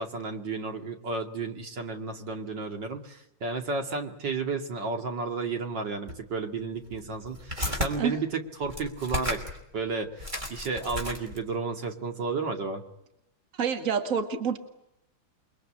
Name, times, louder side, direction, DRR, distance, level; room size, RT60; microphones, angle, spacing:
voice 1, 0.0-9.4 9.7-10.2 10.5-12.8, right 4 dB, 60° right, 5 dB, 3.0 m, -32 dB
cassette tape deck open close +tape handling, 6.1-6.2 6.9-7.9 8.6-9.6 9.9-10.0 10.2-11.5, left 1 dB, 20° right, 5.2 m, -33 dB
voice 2, 13.6-14.6, right 6 dB, 40° right, 7 dB, 2.2 m, -27 dB
28.5 x 23.0 x 8.8 m, 0.83 s
omnidirectional pair, 2.2 m